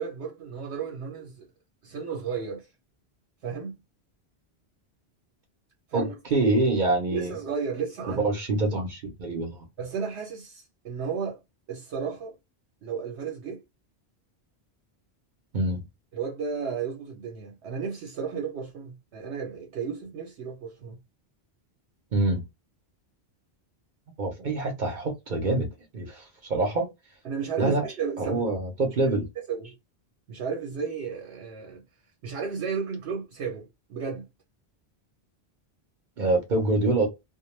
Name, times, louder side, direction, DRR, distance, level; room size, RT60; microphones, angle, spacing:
voice 1, 0.0-1.5 1.8-2.7 3.4-3.8 5.9-6.1 7.1-8.2 9.8-11.4 11.7-12.3 12.8-13.6 16.1-21.0 27.2-28.4 29.5-29.7 30.3-31.8 32.2-34.3, right 6 dB, 85° right, 1.0 m, -33 dB
voice 2, 5.9-7.3 8.0-9.6 15.5-15.8 22.1-22.4 24.2-25.7 25.9-26.9 27.6-27.8 28.2-29.3 36.2-37.1, right 2 dB, 55° right, 0.7 m, -25 dB
2.2 x 2.2 x 3.1 m
omnidirectional pair, 1.1 m